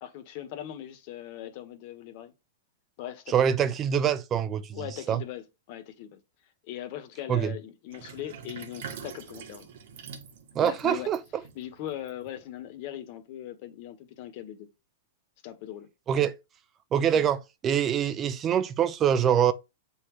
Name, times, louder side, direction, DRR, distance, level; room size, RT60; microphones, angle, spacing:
voice 1, 0.0-2.3 3.0-3.7 4.7-6.2 6.7-9.7 10.6-11.1 11.5-14.7 15.4-15.9 17.1-17.3, left 12 dB, 50° left, 1.4 m, -40 dB
voice 2, 3.3-4.8 5.1-5.2 7.3-7.5 10.6-11.2 16.1-16.3 16.9-17.4 17.6-19.5, right 8 dB, 30° right, 0.6 m, -24 dB
Sink (filling or washing), 7.9-12.6, right 7 dB, 65° right, 1.4 m, -45 dB
7.5 x 4.1 x 3.1 m
hypercardioid pair, 115°, 0 cm